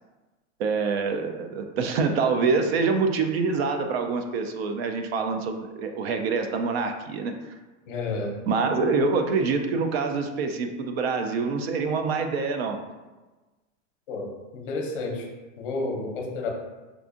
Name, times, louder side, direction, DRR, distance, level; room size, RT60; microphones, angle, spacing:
voice 1, 0.6-7.5 8.5-12.8, right 4 dB, 55° right, 5 dB, 0.4 m, -26 dB
voice 2, 7.9-8.4 14.1-14.3 14.5-15.3 15.6-16.5, left 3 dB, 45° left, 1 dB, 0.7 m, -30 dB
4.7 x 2.5 x 2.4 m, 1.2 s
supercardioid pair, 170°, 38 cm